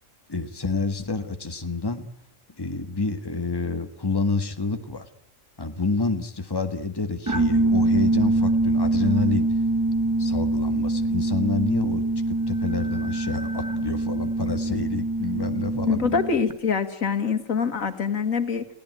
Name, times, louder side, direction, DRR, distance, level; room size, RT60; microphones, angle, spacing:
voice 1, 0.3-2.1 2.6-5.1 5.6-9.5 10.2-16.2, left 3 dB, 20° left, 7 dB, 1.6 m, -28 dB
sound 1, 7.3-16.5, right 2 dB, 15° right, 1.2 m, -24 dB
voice 2, 15.9-18.7, left 6 dB, 85° left, 8 dB, 2.2 m, -25 dB
29.5 x 17.0 x 9.3 m, 0.74 s
omnidirectional pair, 1.4 m